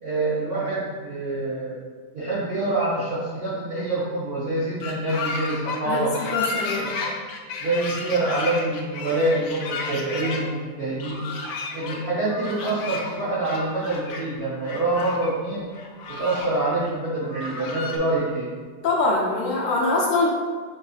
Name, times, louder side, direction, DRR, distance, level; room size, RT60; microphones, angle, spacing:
voice 1, 0.0-1.7 2.1-6.1 6.6-6.9 7.6-11.2 11.7-15.6 16.1-18.5, right 2 dB, 55° right, -9 dB, 0.7 m, -26 dB
sound 1, 4.8-10.4 11.0-12.0 12.3-13.2 13.4-14.2 14.6-15.3 15.7-16.5 16.8-16.9 17.2-18.0, left 3 dB, 90° left, 1.4 m, -32 dB
voice 2, 5.8-6.9 18.8-20.3, left 3 dB, 70° left, -4 dB, 1.3 m, -23 dB
6.4 x 2.6 x 2.4 m, 1.6 s
omnidirectional pair, 2.1 m